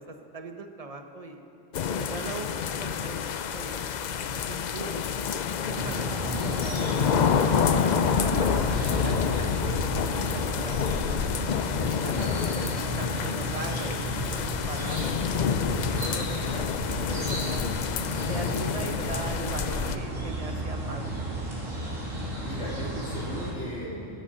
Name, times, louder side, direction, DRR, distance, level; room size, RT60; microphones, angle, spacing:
voice 1, 0.0-1.4 1.9-3.8 4.2-11.0 11.8-15.1 15.4-17.6 18.2-21.1, right 3 dB, 30° right, 5 dB, 1.1 m, -40 dB
sound 1, 1.7-20.0, left 7 dB, 70° left, 0.4 m, -28 dB
sound 2, 5.7-23.5, right 1 dB, 70° right, 3.2 m, -33 dB
voice 2, 12.0-12.4 22.4-24.1, left 1 dB, 55° left, -6 dB, 3.5 m, -37 dB
22.0 x 11.5 x 5.4 m, 2.8 s
omnidirectional pair, 1.4 m